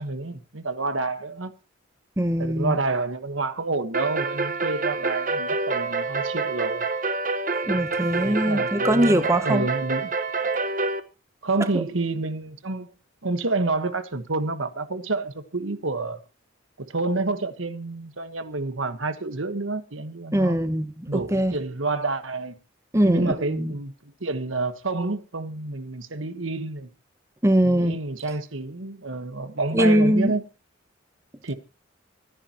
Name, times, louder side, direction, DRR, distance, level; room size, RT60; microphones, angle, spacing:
voice 1, 0.0-1.5 2.4-6.9 8.2-10.1 11.4-12.9 13.2-16.2 16.8-20.6 21.1-22.5 23.1-26.9 27.6-30.5 31.4-31.5, right 3 dB, 90° right, 1.4 m, -28 dB
voice 2, 2.2-2.8 7.7-9.6 11.7-11.8 20.3-21.6 22.9-23.7 27.4-28.0 29.7-30.3, right 1 dB, 15° right, 1.0 m, -22 dB
sound 1, 3.9-11.0, right 3 dB, 45° right, 1.3 m, -27 dB
25.0 x 10.0 x 3.0 m
head